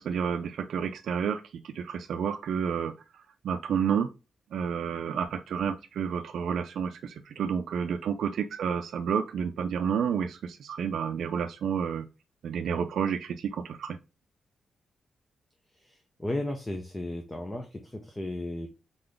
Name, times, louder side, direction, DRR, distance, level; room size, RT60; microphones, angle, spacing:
voice 1, 0.0-4.1 4.5-12.1 12.4-14.0, right 7 dB, 65° right, 8 dB, 0.4 m, -30 dB
voice 2, 15.7-18.7, left 1 dB, 10° left, 4 dB, 0.5 m, -35 dB
3.9 x 3.9 x 3.3 m, 0.29 s
wide cardioid pair, 180°, 0 cm